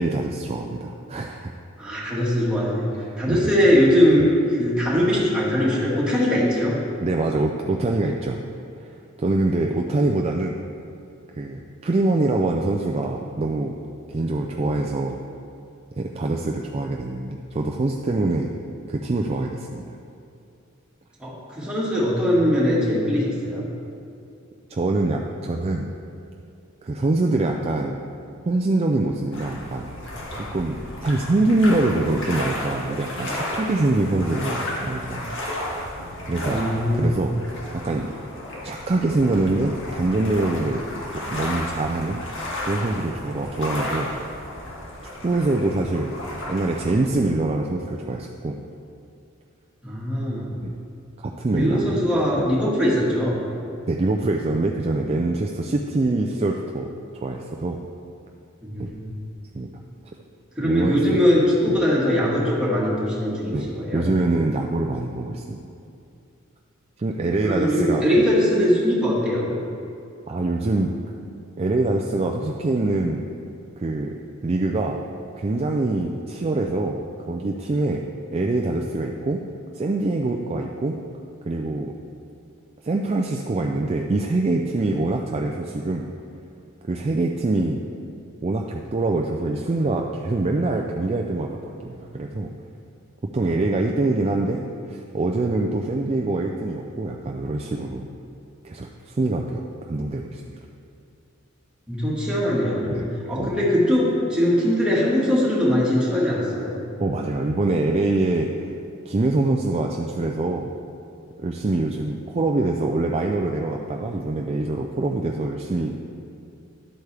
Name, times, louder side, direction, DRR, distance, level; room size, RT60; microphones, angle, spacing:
voice 1, 0.0-1.5 3.0-3.4 4.2-4.3 7.0-8.4 8.8-8.9 9.2-10.6 11.3-13.7 14.1-15.2 16.0-18.5 18.9-19.8 24.7-25.9 26.8-28.0 28.5-29.9 30.3-35.3 36.3-36.6 36.9-37.3 37.7-38.1 38.6-40.8 41.1-42.2 42.6-44.1 45.2-46.2 46.5-48.6 50.6-50.7 51.4-52.0 52.4-52.5 53.9-57.8 58.8-58.9 59.5-59.7 60.6-61.0 61.7-61.8 63.5-63.7 63.9-65.6 67.0-68.1 70.3-70.9 71.6-73.2 73.8-75.0 75.4-78.0 78.3-79.4 79.7-81.0 81.5-81.9 82.8-86.1 86.8-87.8 88.4-92.5 93.3-98.1 98.6-100.6 102.9-103.1 103.4-103.6 107.0-108.7 109.1-110.7 111.4-115.9, right 2 dB, 30° right, 1 dB, 0.4 m, -24 dB
voice 2, 1.8-4.3 4.6-6.8 21.2-23.7 36.4-37.1 49.8-50.5 51.5-53.4 58.6-59.1 60.6-64.0 67.4-69.5 101.9-106.7, equal, 5° right, -6 dB, 1.8 m, -21 dB
sound 1, 29.3-46.9, left 1 dB, 60° left, 1.9 m, -33 dB
11.5 x 8.1 x 3.4 m, 2.6 s
head